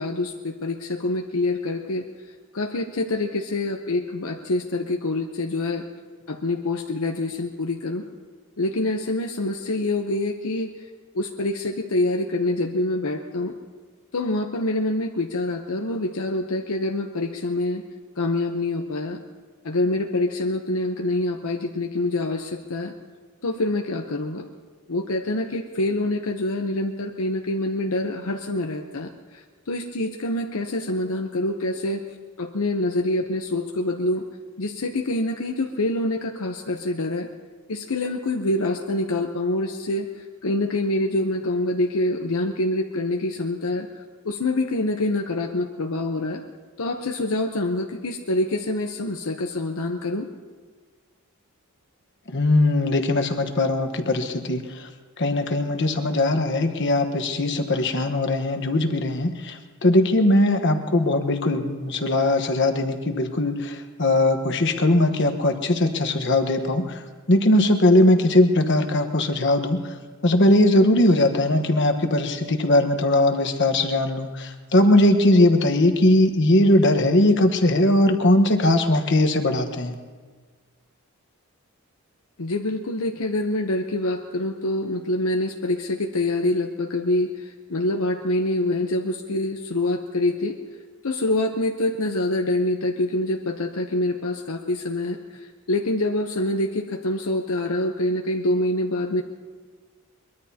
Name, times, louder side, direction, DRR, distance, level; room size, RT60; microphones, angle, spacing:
voice 1, 0.0-2.1 2.5-5.8 6.3-8.0 8.6-10.7 11.1-13.5 14.1-17.8 18.2-19.2 19.6-22.9 23.4-24.5 24.9-32.0 32.4-34.2 34.6-37.3 37.7-43.9 44.2-46.4 46.8-50.3 82.4-90.6 91.0-99.2, left 2 dB, 70° left, 3 dB, 0.8 m, -26 dB
voice 2, 52.3-54.9 55.2-70.0 70.2-79.9, left 1 dB, 55° left, 7 dB, 1.2 m, -20 dB
23.0 x 22.0 x 2.9 m, 1.4 s
head